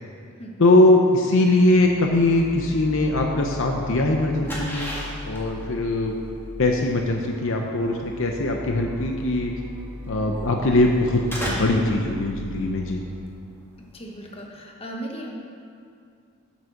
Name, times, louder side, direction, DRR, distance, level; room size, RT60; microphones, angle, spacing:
voice 1, 0.6-4.9 5.2-6.1 6.6-9.5 10.1-11.2 11.6-13.0, left 2 dB, 60° left, 2 dB, 0.7 m, -21 dB
sound 1, 1.6-13.3, left 1 dB, 10° right, 1.1 m, -39 dB
sound 2, 4.0-14.4, equal, 10° left, 1.7 m, -36 dB
voice 2, 13.9-15.3, right 1 dB, 25° left, -1 dB, 1.2 m, -36 dB
8.2 x 7.2 x 6.5 m, 2.4 s
head